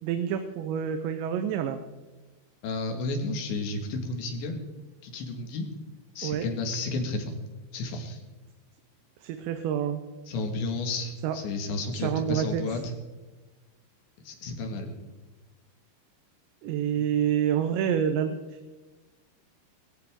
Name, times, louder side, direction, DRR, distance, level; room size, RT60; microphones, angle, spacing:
voice 1, 0.0-1.8 6.2-6.5 9.2-10.0 11.2-11.4 11.9-12.6 16.6-18.8, right 9 dB, 85° right, 8 dB, 3.1 m, -28 dB
voice 2, 2.6-4.7 5.0-5.7 6.2-7.3 7.7-8.2 10.3-12.8 14.2-14.9, left 3 dB, 85° left, 4 dB, 4.2 m, -32 dB
21.0 x 15.0 x 3.7 m, 1.2 s
omnidirectional pair, 5.0 m